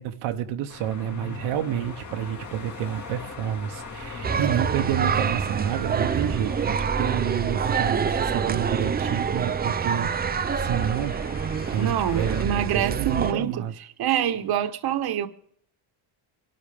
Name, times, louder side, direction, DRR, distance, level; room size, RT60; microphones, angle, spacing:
voice 1, 0.0-11.2 11.7-13.7, right 10 dB, 75° right, 1.1 m, -29 dB
sound 1, 0.7-12.4, left 3 dB, 35° left, 2.6 m, -41 dB
sound 2, 4.2-13.3, right 6 dB, 20° right, 0.5 m, -26 dB
voice 2, 11.8-13.6 14.0-15.3, right 10 dB, 50° right, 1.2 m, -25 dB
25.0 x 12.0 x 3.5 m
cardioid pair, 125°, 48 cm